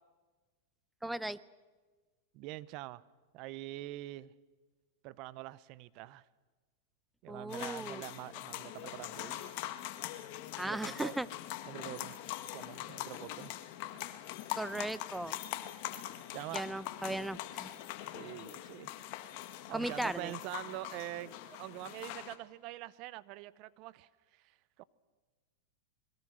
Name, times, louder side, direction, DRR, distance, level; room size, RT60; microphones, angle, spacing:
voice 1, 1.0-1.4 7.3-8.0 10.6-11.3 14.5-15.4 16.5-17.7 19.7-20.3, right 1 dB, 5° right, 17 dB, 0.7 m, -37 dB
voice 2, 2.3-3.0 3.3-4.3 5.0-6.3 7.2-9.5 10.6-11.1 11.7-12.2 12.5-13.5 15.9-16.0 16.3-16.7 18.1-19.2 19.7-24.8, right 17 dB, 50° right, 19 dB, 0.8 m, -45 dB
sound 1, 7.5-22.4, left 14 dB, 55° left, 1.8 m, -43 dB
27.0 x 21.5 x 6.5 m, 1.3 s
hypercardioid pair, 125°, 0 cm